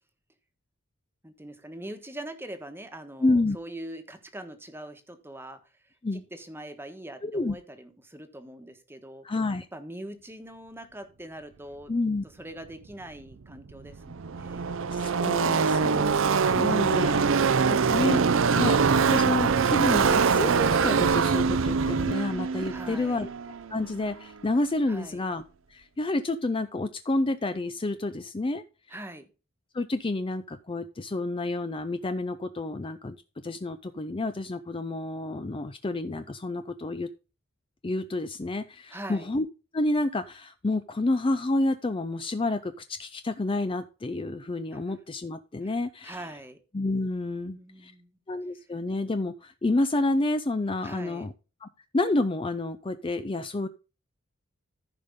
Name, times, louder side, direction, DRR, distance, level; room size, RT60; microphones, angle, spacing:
voice 1, 1.2-9.3 9.7-11.9 12.4-14.8 22.7-23.3 24.9-25.2 28.9-29.3 38.9-39.3 44.7-44.9 45.6-45.7 46.0-46.6 47.4-48.1 50.8-51.3, right 1 dB, 10° right, 7 dB, 1.3 m, -43 dB
voice 2, 3.2-3.6 6.0-6.2 7.2-7.5 9.2-9.7 11.9-12.2 15.0-17.3 17.7-18.2 18.5-23.3 23.7-25.4 25.7-28.6 29.7-33.2 33.4-37.1 37.8-39.4 39.7-46.2 46.7-47.9 48.3-51.3 51.6-53.7, left 2 dB, 25° left, 10 dB, 0.5 m, -29 dB
Car passing by / Race car auto racing, 13.3-13.4 13.6-24.2, right 5 dB, 65° right, 0.5 m, -24 dB
14.5 x 5.3 x 3.7 m, 0.32 s
head